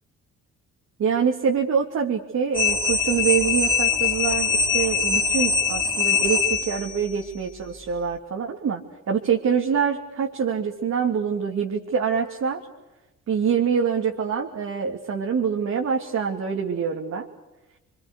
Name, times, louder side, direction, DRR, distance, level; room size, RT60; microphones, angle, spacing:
voice 1, 1.0-8.8 9.1-12.6 13.3-17.3, right 6 dB, 60° right, 0 dB, 2.9 m, -25 dB
sound 1, 2.5-7.0, left 5 dB, 15° left, 4.6 m, -22 dB
29.5 x 24.5 x 6.7 m, 0.97 s
cardioid pair, 90°, 30 cm